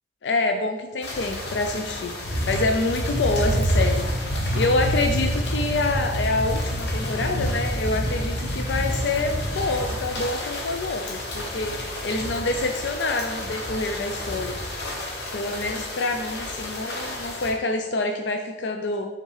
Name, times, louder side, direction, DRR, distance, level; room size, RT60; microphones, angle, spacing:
voice 1, 0.2-2.1 2.5-4.1 4.5-11.7 12.0-14.6 15.3-19.1, left 2 dB, 90° left, 4 dB, 0.4 m, -26 dB
sound 1, 1.0-17.5, equal, 70° left, 1.1 m, -28 dB
5.4 x 3.7 x 4.9 m, 1.2 s
head